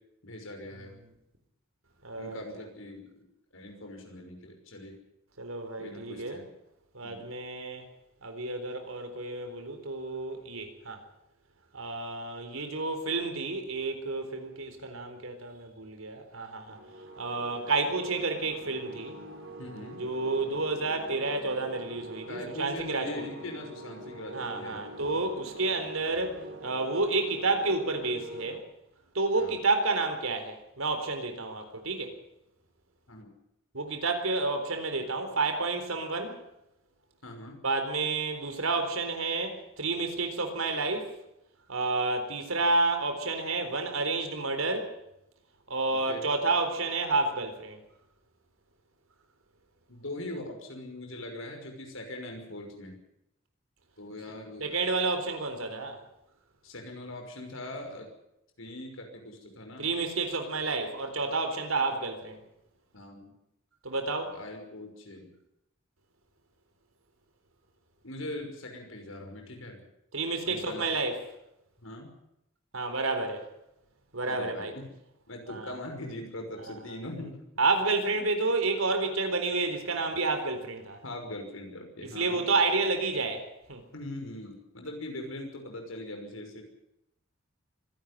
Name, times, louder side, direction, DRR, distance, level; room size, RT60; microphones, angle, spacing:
voice 1, 0.2-0.9 2.2-3.3 3.5-4.9 5.8-6.4 7.0-7.3 19.6-20.0 22.3-25.3 29.3-29.6 33.1-33.3 37.2-37.6 46.1-46.2 49.9-53.0 54.0-54.7 56.6-58.1 58.6-59.9 62.9-63.3 64.3-65.3 68.0-69.9 70.5-70.9 71.8-72.1 74.3-74.9 75.3-77.4 78.2-78.3 81.0-82.4 83.9-86.6, left 1 dB, 80° left, 3 dB, 5.9 m, -41 dB
voice 2, 2.0-2.4 5.4-6.4 6.9-7.9 8.2-11.0 11.7-16.8 17.2-19.2 20.0-23.3 24.3-28.6 29.1-32.1 33.7-36.4 37.6-41.1 41.7-44.9 45.7-47.8 54.6-56.0 59.8-62.4 63.8-64.4 70.1-71.2 72.7-73.5 74.1-74.7 75.5-75.7 77.6-81.0 82.1-83.8, right 3 dB, 85° right, 7 dB, 4.0 m, -30 dB
sound 1, 16.7-28.6, right 2 dB, 70° right, 3.6 m, -44 dB
24.5 x 11.5 x 9.9 m, 0.83 s
head